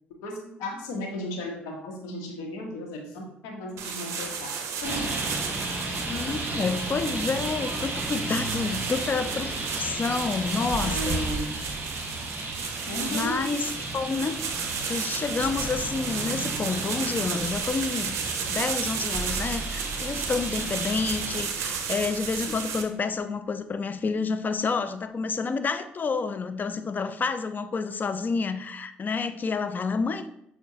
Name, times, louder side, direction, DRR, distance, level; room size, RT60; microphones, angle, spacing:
voice 1, 0.1-4.5 4.8-5.2 10.8-11.5 12.9-13.5, left 1 dB, 75° left, 1 dB, 0.8 m, -35 dB
sound 1, 3.8-22.8, right 6 dB, 65° right, 0.5 m, -34 dB
Traffic noise roadway noise, 4.8-21.4, right 2 dB, 35° right, 1.0 m, -34 dB
voice 2, 6.1-11.2 13.1-14.4 14.9-18.2 18.5-30.3, left 4 dB, 35° left, 11 dB, 0.4 m, -29 dB
sound 2, 10.7-14.5 18.1-18.2 19.1-23.0, right 3 dB, 15° right, 0.8 m, -41 dB
6.0 x 2.1 x 2.7 m, 0.78 s
hypercardioid pair, 50°, 5 cm